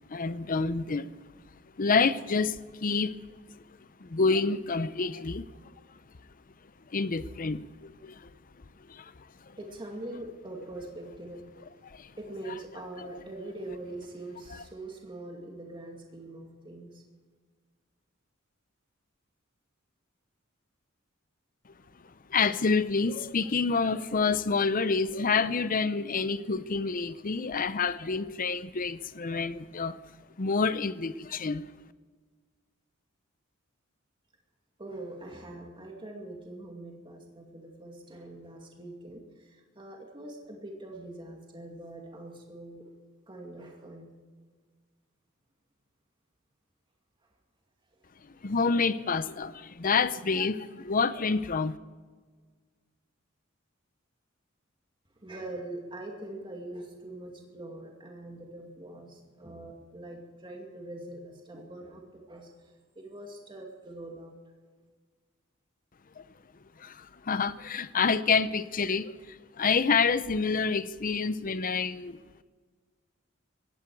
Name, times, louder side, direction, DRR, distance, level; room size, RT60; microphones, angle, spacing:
voice 1, 0.1-1.1 1.8-3.1 4.0-5.5 6.9-8.3 8.9-9.1 11.8-12.1 13.0-13.2 22.3-30.0 30.4-31.7 48.4-51.8 66.2-66.3 66.8-72.2, left 4 dB, 40° left, 14 dB, 0.7 m, -28 dB
voice 2, 9.6-11.5 12.2-17.0 34.8-42.9 43.3-44.1 55.2-64.4, right 2 dB, 25° right, 0 dB, 2.3 m, -43 dB
19.0 x 16.0 x 4.7 m, 1.5 s
head